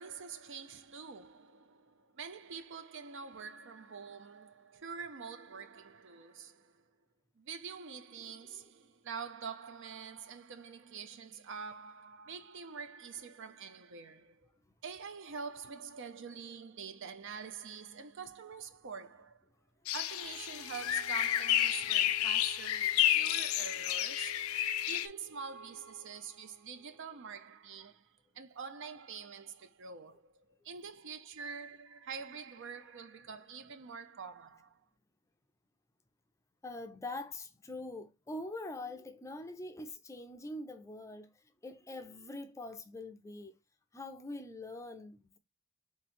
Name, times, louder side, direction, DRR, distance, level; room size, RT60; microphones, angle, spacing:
voice 1, 0.0-6.8 7.4-14.5 14.8-19.4 19.9-34.8, right 5 dB, 55° right, 0.5 m, -46 dB
sound 1, 19.9-25.1, left 12 dB, 75° left, 0.4 m, -31 dB
sound 2, 20.2-27.9, right 6 dB, 10° right, 0.9 m, -57 dB
voice 2, 36.6-43.5 43.9-45.4, left 2 dB, 15° left, 0.4 m, -44 dB
3.8 x 3.0 x 4.2 m
head